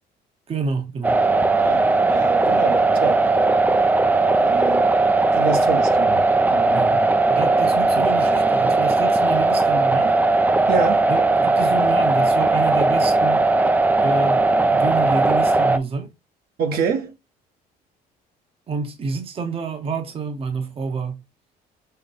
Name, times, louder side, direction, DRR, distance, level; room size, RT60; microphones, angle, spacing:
voice 1, 0.5-1.2 6.7-10.1 11.1-13.5 14.0-16.1 18.7-21.2, right 4 dB, 35° right, 0.8 m, -28 dB
sound 1, 1.0-15.8, right 3 dB, 10° right, 0.3 m, -18 dB
voice 2, 1.6-3.3 4.4-5.0 5.3-6.2 6.5-7.1 7.9-8.1 10.7-11.1 16.6-17.1, right 5 dB, 65° right, 1.0 m, -26 dB
5.6 x 2.1 x 3.9 m
cardioid pair, 110°, 17 cm